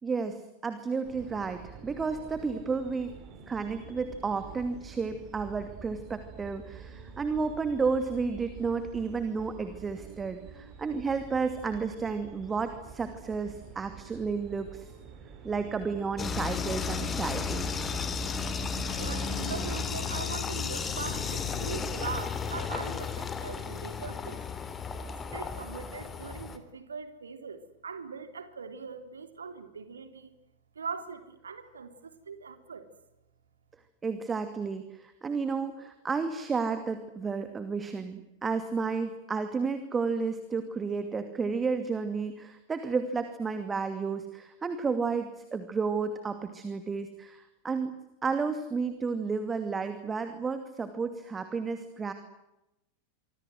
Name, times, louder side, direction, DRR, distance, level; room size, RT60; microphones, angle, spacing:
voice 1, 0.0-3.1 3.5-14.9 15.4-17.7 34.0-47.9 48.2-52.1, right 5 dB, 15° right, 9 dB, 2.5 m, -32 dB
sound 1, 1.0-19.8, right 6 dB, 35° right, 7.3 m, -47 dB
sound 2, 16.2-26.6, left 5 dB, 20° left, 3.2 m, -33 dB
voice 2, 19.0-24.4 25.3-30.3 30.7-32.9, right 5 dB, 70° right, 9 dB, 3.3 m, -41 dB
26.0 x 26.0 x 7.9 m, 0.92 s
figure-of-eight pair, 90°, 0 cm